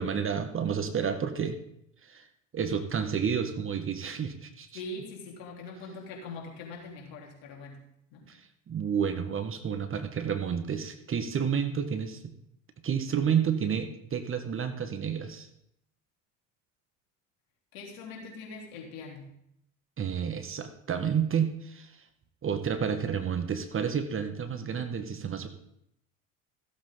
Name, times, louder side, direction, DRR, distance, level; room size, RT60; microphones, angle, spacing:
voice 1, 0.0-1.6 2.0-2.3 2.5-4.7 8.3-12.3 12.8-15.5 20.0-22.0 22.4-25.5, right 7 dB, 35° right, 8 dB, 1.3 m, -30 dB
voice 2, 4.7-7.8 8.1-8.3 17.7-19.3, left 3 dB, 65° left, -1 dB, 3.6 m, -42 dB
15.5 x 8.0 x 3.9 m, 0.74 s
hypercardioid pair, 75°, 39 cm